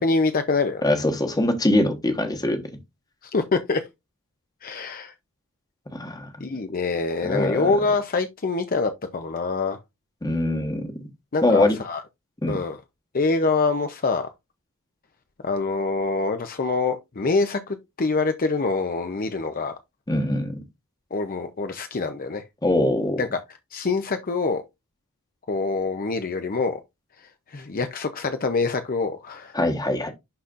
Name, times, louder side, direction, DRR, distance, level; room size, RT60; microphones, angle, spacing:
voice 1, 0.0-0.9 3.2-3.8 4.6-5.1 6.4-9.8 11.3-12.0 12.5-12.8 13.1-14.3 15.4-19.8 21.1-22.4 23.2-23.4 23.7-24.6 25.5-26.8 27.5-29.5, left 3 dB, 45° left, 0.7 m, -25 dB
voice 2, 0.8-2.6 5.9-6.3 7.2-7.7 10.2-11.0 11.4-11.8 12.4-12.6 20.1-20.6 22.6-23.2 29.5-30.1, left 1 dB, 20° left, 1.2 m, -23 dB
11.0 x 4.2 x 2.5 m
head